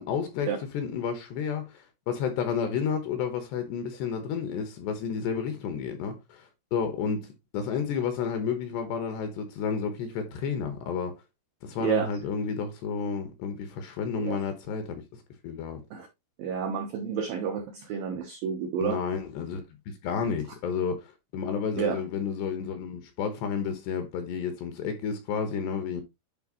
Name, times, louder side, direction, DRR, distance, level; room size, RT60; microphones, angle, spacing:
voice 1, 0.0-11.2 11.6-15.0 15.4-15.8 18.8-26.0, left 6 dB, 70° left, 2.9 m, -31 dB
voice 2, 16.4-19.0 21.8-22.0, right 7 dB, 80° right, 2.1 m, -30 dB
11.0 x 4.7 x 3.0 m
omnidirectional pair, 5.8 m